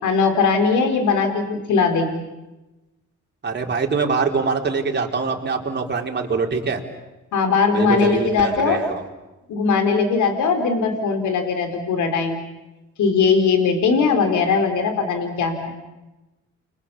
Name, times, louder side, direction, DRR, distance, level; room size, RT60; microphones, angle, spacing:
voice 1, 0.0-2.2 7.3-8.8 9.5-12.4 13.0-15.7, left 5 dB, 75° left, 7 dB, 4.3 m, -20 dB
voice 2, 3.4-6.8 7.7-9.0, right 4 dB, 35° right, 1 dB, 4.3 m, -24 dB
30.0 x 24.5 x 7.1 m, 1.0 s
cardioid pair, 90°, 30 cm